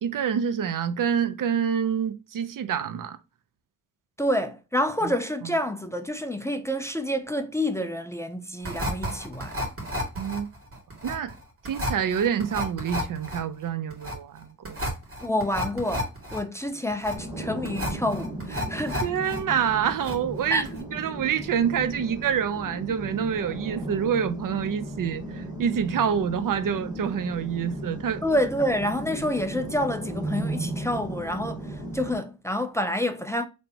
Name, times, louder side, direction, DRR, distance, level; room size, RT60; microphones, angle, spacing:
voice 1, 0.0-3.2 5.0-5.1 10.2-10.5 11.0-11.3 11.6-14.8 19.0-28.2, right 8 dB, 65° right, 0.6 m, -27 dB
voice 2, 4.2-9.6 15.2-19.0 20.5-20.6 28.2-33.5, left 1 dB, 10° left, 0.4 m, -28 dB
sound 1, 8.6-19.4 19.7-20.4 20.6-20.8, equal, 40° right, 2.0 m, -32 dB
sound 2, 17.1-32.1, right 1 dB, 10° right, 1.3 m, -36 dB
4.2 x 3.3 x 2.8 m
wide cardioid pair, 145°, 35 cm